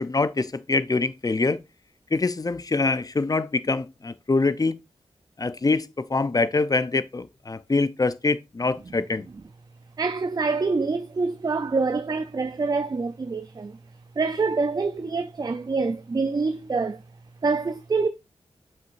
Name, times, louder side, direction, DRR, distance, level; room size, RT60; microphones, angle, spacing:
voice 1, 0.0-1.6 2.1-4.8 5.4-9.3, left 3 dB, 30° left, 0.6 m, -24 dB
voice 2, 10.0-13.8 14.2-17.0 17.4-18.1, right 4 dB, 35° right, 0.5 m, -26 dB
7.6 x 5.8 x 2.6 m
wide cardioid pair, 75°, 12 cm